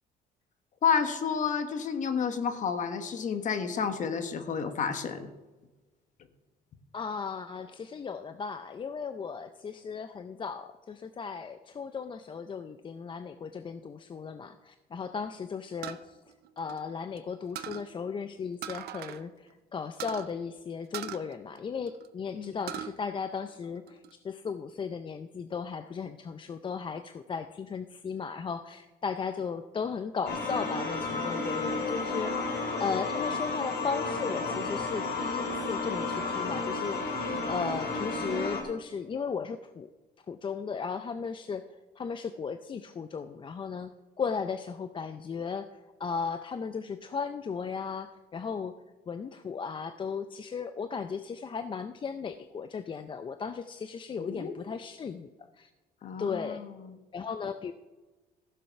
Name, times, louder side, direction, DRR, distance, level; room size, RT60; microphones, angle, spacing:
voice 1, 0.8-5.3 22.3-22.6 54.2-54.5 56.0-57.0, left 6 dB, 50° left, 9 dB, 1.3 m, -30 dB
voice 2, 6.9-16.2 16.6-24.0 24.2-32.5 32.8-39.9 40.3-43.9 44.2-45.7 46.0-48.8 49.1-55.3 55.6-55.7 56.2-56.6 57.1-57.7, left 5 dB, 30° left, 10 dB, 0.5 m, -36 dB
sound 1, 15.8-17.2 17.6-17.9 18.6-19.2 19.5-19.6 20.0-20.3 20.9-22.1 22.4-22.9 23.4-24.1, right 11 dB, 70° right, 0.7 m, -40 dB
sound 2, 30.3-38.6, left 3 dB, 75° left, 2.5 m, -32 dB
14.5 x 6.8 x 5.8 m, 1.2 s
cardioid pair, 110°, 17 cm